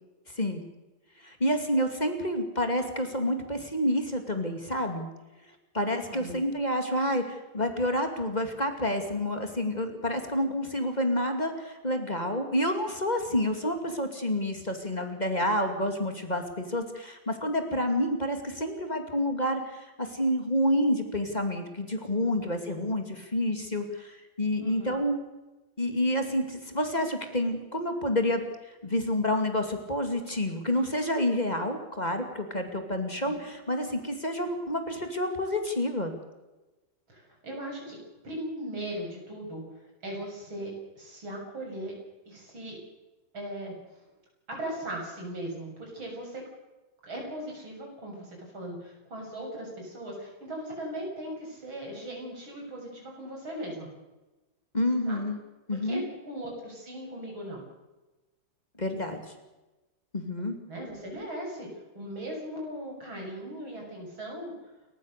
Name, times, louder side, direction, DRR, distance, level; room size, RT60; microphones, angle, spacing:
voice 1, 1.2-5.1 5.7-25.2 25.8-28.4 28.8-36.1 54.7-55.4 55.7-56.0 58.8-59.2 60.1-60.6, left 1 dB, 20° left, 5 dB, 2.6 m, -29 dB
voice 2, 24.6-25.0 33.2-33.4 37.1-38.0 38.2-42.0 42.3-42.8 43.3-44.0 44.5-46.4 47.0-53.9 55.1-55.2 55.7-57.6 60.7-61.7 61.9-64.5, right 1 dB, 80° right, 0 dB, 7.9 m, -38 dB
30.0 x 14.5 x 6.7 m, 1.1 s
omnidirectional pair, 2.2 m